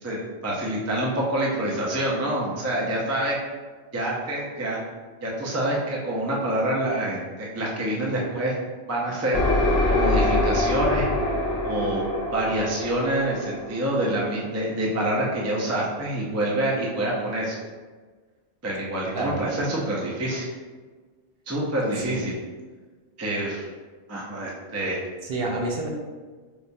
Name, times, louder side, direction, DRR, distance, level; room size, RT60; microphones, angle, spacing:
voice 1, 0.0-3.4 3.9-4.8 5.2-8.5 8.9-9.4 9.8-11.1 11.6-12.0 12.3-17.6 18.6-20.5 21.5-22.3 23.2-23.7 24.1-25.0, right 1 dB, 25° right, -4 dB, 0.4 m, -26 dB
sound 1, 9.3-14.9, left 2 dB, 60° left, 0.9 m, -25 dB
voice 2, 25.2-25.9, right 2 dB, 65° right, -1 dB, 0.8 m, -28 dB
4.7 x 2.2 x 2.6 m, 1.4 s
omnidirectional pair, 1.2 m